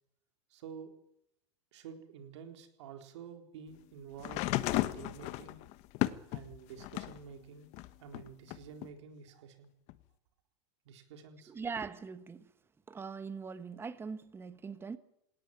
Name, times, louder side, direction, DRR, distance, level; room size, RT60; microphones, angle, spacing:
voice 1, 0.5-0.9 1.7-5.6 6.3-7.7 8.0-9.7 10.9-11.5, right 6 dB, 80° right, 4.1 m, -49 dB
sound 1, 4.2-7.2 7.7-8.9 9.9-10.0, left 17 dB, 50° left, 1.2 m, -35 dB
voice 2, 11.5-12.5 12.9-15.0, right 5 dB, 15° right, 1.4 m, -41 dB
20.0 x 18.0 x 9.1 m
supercardioid pair, 130°, 15 cm